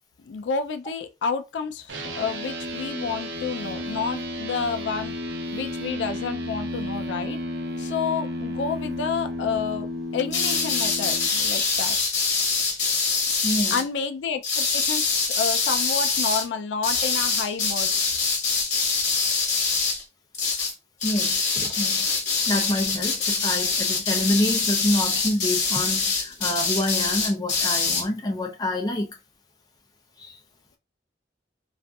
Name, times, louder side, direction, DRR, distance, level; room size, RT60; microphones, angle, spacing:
voice 1, 0.2-5.1 5.5-7.4 7.8-9.9 10.1-12.0 13.7-17.9, left 5 dB, 85° left, 0.4 m, -29 dB
sound 1, 1.9-11.3, left 1 dB, 85° right, 0.5 m, -32 dB
sound 2, 10.3-13.8 14.4-16.4 16.8-20.0 20.3-20.7 21.0-28.0, left 4 dB, 45° left, 1.1 m, -24 dB
voice 2, 13.4-13.8 21.0-22.1 22.5-29.1 30.2-30.4, left 1 dB, 20° left, 0.4 m, -27 dB
2.6 x 2.4 x 2.3 m
head